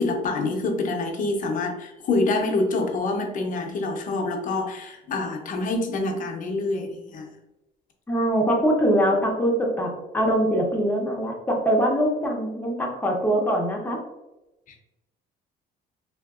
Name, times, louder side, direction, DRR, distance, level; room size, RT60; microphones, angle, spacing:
voice 1, 0.0-7.3 14.7-14.8, left 2 dB, 50° left, 2 dB, 0.7 m, -26 dB
voice 2, 8.1-14.0, equal, 10° left, -1 dB, 0.8 m, -23 dB
3.5 x 2.5 x 2.4 m, 0.97 s
cardioid pair, 110°, 17 cm